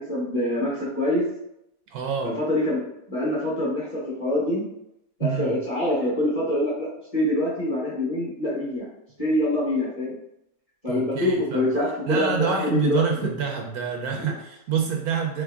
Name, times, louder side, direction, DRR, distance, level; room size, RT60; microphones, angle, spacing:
voice 1, 0.1-1.2 2.2-2.8 3.1-4.6 5.2-8.9 9.2-10.2 10.8-13.0 14.2-14.3, left 1 dB, 25° left, -6 dB, 1.0 m, -25 dB
voice 2, 1.9-2.3 5.2-5.6 10.9-11.7 12.1-15.4, right 7 dB, 70° right, 2 dB, 1.0 m, -27 dB
3.4 x 3.2 x 3.5 m, 0.81 s
omnidirectional pair, 1.8 m